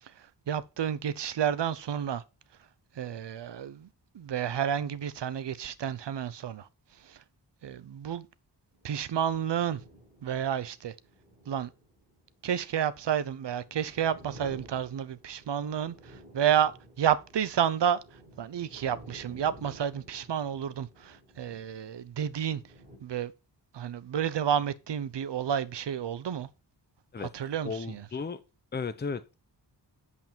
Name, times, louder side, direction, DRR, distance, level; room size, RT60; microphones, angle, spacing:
voice 1, 0.0-2.2 3.0-3.9 4.1-6.7 7.0-7.2 7.6-8.3 8.8-9.8 10.2-10.9 11.5-11.7 12.4-16.7 17.0-18.0 18.4-22.6 23.0-23.3 23.7-26.5 27.2-28.1, right 9 dB, 80° right, 0.8 m, -30 dB
sound 1, 8.7-23.0, right 1 dB, 20° right, 4.2 m, -53 dB
voice 2, 27.6-28.4 28.7-29.3, left 5 dB, 25° left, 0.7 m, -34 dB
8.4 x 7.3 x 4.4 m
wide cardioid pair, 155°, 42 cm